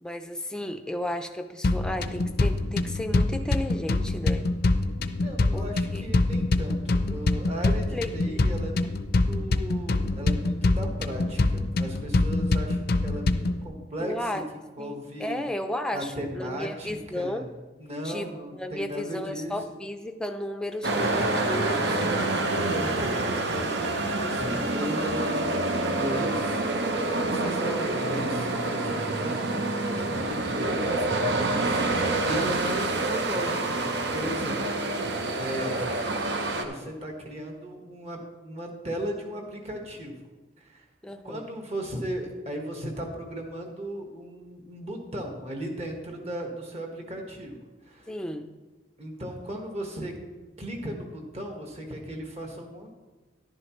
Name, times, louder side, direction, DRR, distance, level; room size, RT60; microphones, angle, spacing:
voice 1, 0.0-4.5 5.5-6.0 7.9-8.1 14.0-14.4 14.8-17.5 18.0-22.1 27.4-27.9 41.0-41.5 48.1-48.5, left 1 dB, 5° left, 6 dB, 0.5 m, -34 dB
sound 1, 1.6-13.6, left 2 dB, 50° left, 0.5 m, -25 dB
voice 2, 5.1-9.0 9.3-14.3 14.8-15.4 15.9-17.5 17.8-19.5 21.7-34.8 35.1-35.9 36.6-40.1 40.6-40.8 41.2-48.1 49.0-50.1 50.6-52.9, equal, 35° right, 2 dB, 1.5 m, -36 dB
sound 2, 20.8-36.7, right 2 dB, 60° right, 0.9 m, -27 dB
11.0 x 11.0 x 3.1 m, 1.2 s
head